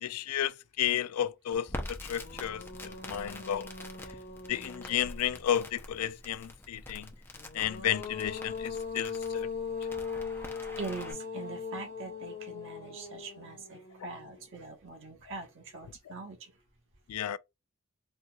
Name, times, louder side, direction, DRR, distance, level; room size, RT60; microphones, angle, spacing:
voice 1, 0.0-3.7 4.5-7.1 7.5-9.5 17.1-17.4, left 10 dB, 80° left, 0.4 m, -32 dB
sound 1, 1.5-1.6 2.0-5.7 7.3-14.6, left 5 dB, 50° left, 0.7 m, -40 dB
Crackle, 1.7-11.1, left 1 dB, 10° left, 0.6 m, -45 dB
voice 2, 10.6-16.5, right 3 dB, 60° right, 1.2 m, -43 dB
4.2 x 2.8 x 2.3 m
head